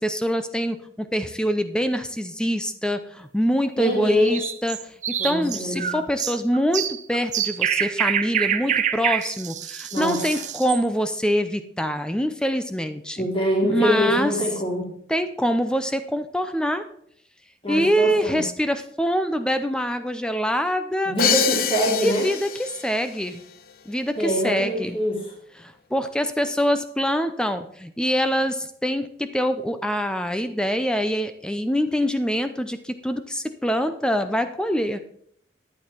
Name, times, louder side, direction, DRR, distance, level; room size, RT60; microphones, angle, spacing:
voice 1, 0.0-13.3 13.6-14.3 15.1-16.8 17.7-21.2 22.0-23.4 23.9-25.0 25.6-35.0, equal, 5° left, 10 dB, 0.5 m, -25 dB
voice 2, 3.8-4.3 5.2-5.9 9.9-10.2 13.2-14.9 17.6-18.4 21.1-22.3 24.2-25.2, equal, 30° left, -2 dB, 3.2 m, -24 dB
sound 1, 4.2-10.8, right 9 dB, 40° right, 0.7 m, -26 dB
Crash cymbal, 21.2-23.0, left 8 dB, 50° left, 0.7 m, -25 dB
11.0 x 8.8 x 4.4 m, 0.67 s
head